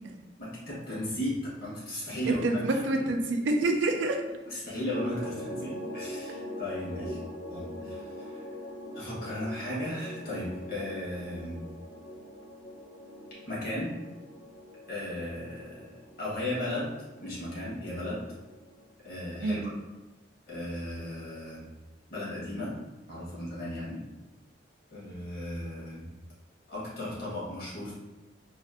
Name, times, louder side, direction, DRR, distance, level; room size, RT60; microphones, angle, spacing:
voice 1, 0.4-2.8 4.5-7.2 7.5-8.4 8.9-11.6 13.5-13.9 14.9-18.3 19.0-19.7 20.5-21.7 22.1-22.8 23.1-24.0 24.9-26.1 26.7-27.9, left 1 dB, 55° left, -7 dB, 1.4 m, -36 dB
voice 2, 2.4-4.2 19.4-19.7, right 2 dB, 80° right, 3 dB, 0.4 m, -27 dB
sound 1, 4.9-18.9, left 1 dB, 35° right, 0.6 m, -43 dB
3.2 x 2.6 x 2.6 m, 1.1 s
head